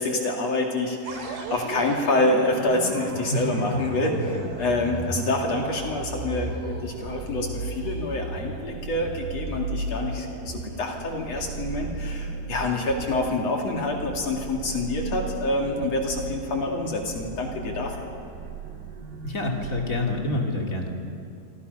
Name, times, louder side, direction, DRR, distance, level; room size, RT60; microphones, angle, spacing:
voice 1, 0.0-18.1, left 2 dB, 45° left, 0 dB, 3.2 m, -27 dB
sound 1, 1.0-20.3, right 4 dB, 80° right, 4.2 m, -35 dB
voice 2, 3.3-3.8 4.1-4.3 19.2-20.9, left 2 dB, 25° left, 0 dB, 2.5 m, -27 dB
28.0 x 25.0 x 5.5 m, 2.6 s
omnidirectional pair, 4.4 m